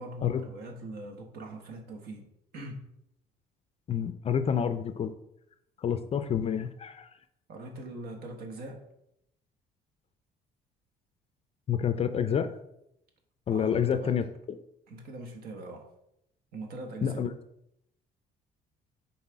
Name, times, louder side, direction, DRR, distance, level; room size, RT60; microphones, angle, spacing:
voice 1, 0.0-2.3 2.5-2.9 7.5-8.8 13.5-14.2 14.9-15.9 16.5-17.3, right 1 dB, 65° right, 1.2 m, -41 dB
voice 2, 3.9-5.1 5.8-7.1 11.7-12.5 13.5-14.6 17.0-17.3, left 8 dB, 35° left, 0.4 m, -28 dB
5.6 x 4.0 x 4.7 m
cardioid pair, 110°, 17 cm